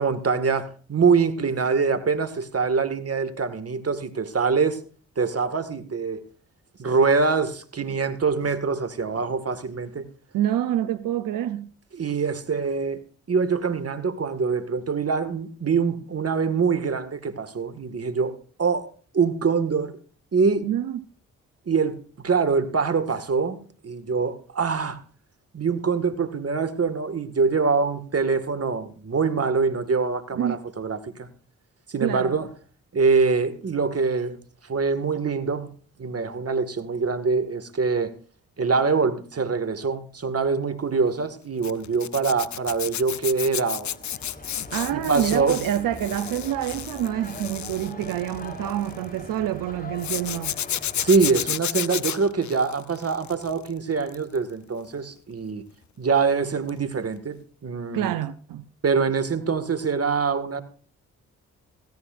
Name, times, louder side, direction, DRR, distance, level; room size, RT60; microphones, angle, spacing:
voice 1, 0.0-4.8 5.2-6.2 6.8-10.0 12.0-13.0 13.3-18.9 19.1-20.0 20.3-20.7 21.7-23.6 23.8-25.0 25.5-31.3 31.9-32.5 32.9-34.4 34.6-35.7 36.0-38.1 38.6-44.0 44.9-45.6 51.0-55.6 56.0-58.1 58.8-60.6, right 5 dB, 45° right, 2.0 m, -24 dB
voice 2, 10.3-11.7 20.6-21.1 30.3-30.6 32.0-32.3 44.7-50.6 57.9-58.7, right 12 dB, 75° right, 0.8 m, -27 dB
Zipper (clothing), 41.6-49.1 50.0-53.7 54.0-54.4 56.7-56.8 57.1-57.2, left 10 dB, 60° left, 0.8 m, -32 dB
sound 1, 43.8-51.5, left 1 dB, 25° left, 4.0 m, -41 dB
16.5 x 14.0 x 2.6 m
supercardioid pair, 45°, 33 cm